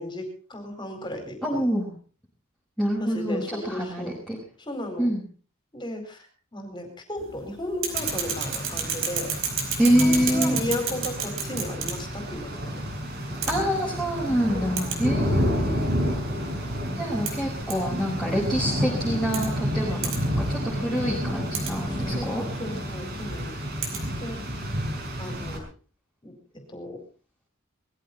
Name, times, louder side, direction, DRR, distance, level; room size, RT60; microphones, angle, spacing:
voice 1, 0.0-1.6 3.0-4.1 4.7-5.1 5.7-6.3 6.5-9.3 9.8-12.8 14.5-15.0 21.9-23.5 24.2-24.4 25.2-25.7 26.2-27.0, left 1 dB, 20° left, 5 dB, 4.6 m, -35 dB
voice 2, 1.4-1.9 2.8-4.4 5.0-5.2 9.8-10.6 13.5-15.9 16.9-20.1 20.5-22.4, equal, ahead, -7 dB, 5.4 m, -26 dB
sound 1, 7.2-24.9, right 6 dB, 65° right, 5.0 m, -35 dB
Rain, 7.9-25.6, equal, 50° right, 5.5 m, -30 dB
20.5 x 15.0 x 4.2 m, 0.40 s
head